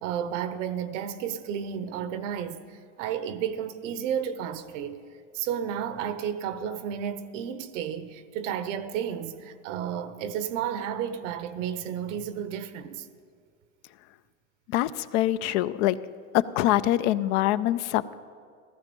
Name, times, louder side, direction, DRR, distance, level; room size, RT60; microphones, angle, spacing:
voice 1, 0.0-5.0 5.3-13.1, right 8 dB, 75° right, 1.0 m, -32 dB
voice 2, 14.7-16.0 16.3-18.2, left 14 dB, 65° left, 0.6 m, -24 dB
14.5 x 14.0 x 5.3 m
supercardioid pair, 120°, 37 cm